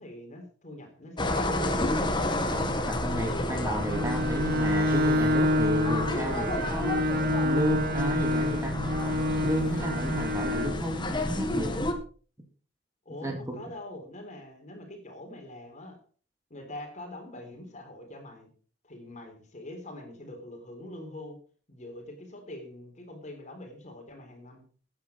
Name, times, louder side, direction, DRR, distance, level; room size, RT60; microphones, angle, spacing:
voice 1, 0.0-1.8 13.1-16.0 16.5-18.5 18.8-21.4 21.7-24.6, left 1 dB, 40° left, 4 dB, 3.9 m, -43 dB
sound 1, 1.2-11.9, left 1 dB, 25° left, 1.8 m, -31 dB
voice 2, 2.5-7.0 7.4-8.7 9.4-11.8 13.2-13.6, right 1 dB, 15° right, 2 dB, 2.8 m, -32 dB
Bowed string instrument, 3.8-10.8, left 1 dB, 55° right, 1.0 m, -27 dB
14.5 x 9.7 x 4.6 m, 0.41 s
head